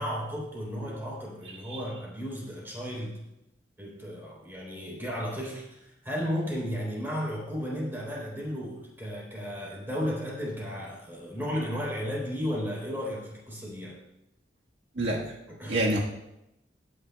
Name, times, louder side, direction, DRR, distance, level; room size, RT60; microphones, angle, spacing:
voice 1, 0.0-3.2 3.8-14.0 15.6-15.8, equal, 10° right, -5 dB, 3.7 m, -34 dB
voice 2, 14.9-15.3 15.7-16.0, right 1 dB, 80° right, -3 dB, 1.6 m, -28 dB
17.5 x 9.8 x 2.3 m, 0.88 s
head